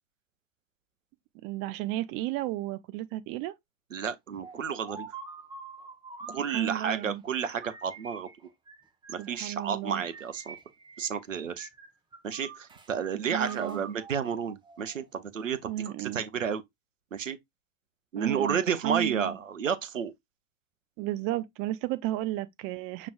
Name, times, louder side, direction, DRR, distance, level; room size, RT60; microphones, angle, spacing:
voice 1, 1.4-3.5 6.5-7.2 9.2-10.0 13.3-13.8 15.7-16.2 18.1-18.6 18.8-19.4 21.0-23.1, right 15 dB, 35° right, 0.5 m, -33 dB
voice 2, 3.9-5.1 6.2-8.3 9.1-10.6 11.0-11.7 12.2-16.6 17.1-17.4 18.1-20.1, right 7 dB, 85° right, 0.7 m, -31 dB
sound 1, 4.4-7.2 7.6-9.4 10.1-11.2 11.5-12.9 13.4-15.2, right 4 dB, 10° right, 1.1 m, -47 dB
6.8 x 3.1 x 2.4 m
figure-of-eight pair, 90°, 37 cm